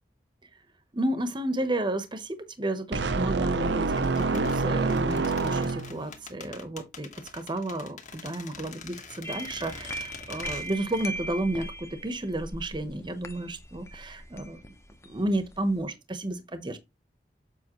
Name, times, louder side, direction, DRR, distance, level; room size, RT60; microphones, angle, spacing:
voice 1, 0.9-14.6 15.0-16.8, right 1 dB, 25° right, 0.9 m, -32 dB
sound 1, 2.9-6.1, right 3 dB, 70° right, 0.7 m, -27 dB
sound 2, 4.0-11.1 11.4-11.5, left 5 dB, 45° left, 1.7 m, -44 dB
sound 3, 9.2-15.8, right 1 dB, 15° left, 0.8 m, -40 dB
7.4 x 5.6 x 3.0 m
head